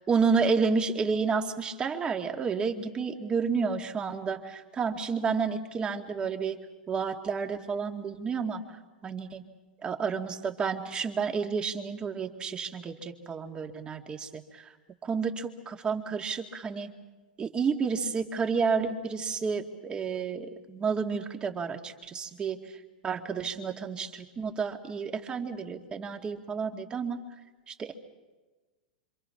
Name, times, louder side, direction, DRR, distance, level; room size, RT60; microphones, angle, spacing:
voice 1, 0.0-6.6 6.9-8.6 9.0-9.4 9.8-14.7 15.0-16.9 17.4-27.2 27.7-27.9, right 5 dB, 20° right, 4 dB, 2.3 m, -30 dB
27.0 x 26.0 x 6.0 m, 1.2 s
hypercardioid pair, 135°, 5 cm